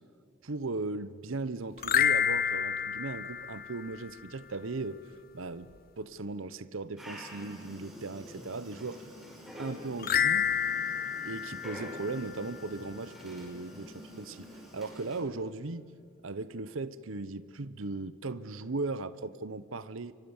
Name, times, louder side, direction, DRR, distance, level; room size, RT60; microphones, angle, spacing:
voice 1, 0.4-5.0 5.3-5.7 6.0-9.1 9.6-10.5 11.2-15.9 16.2-20.1, right 3 dB, 75° right, 15 dB, 0.8 m, -37 dB
sound 1, 1.8-4.3 10.0-12.6, left 8 dB, 45° left, 1.0 m, -29 dB
Dog, 7.0-15.2, equal, ahead, 5.8 m, -47 dB
28.5 x 24.0 x 7.2 m, 2.2 s
head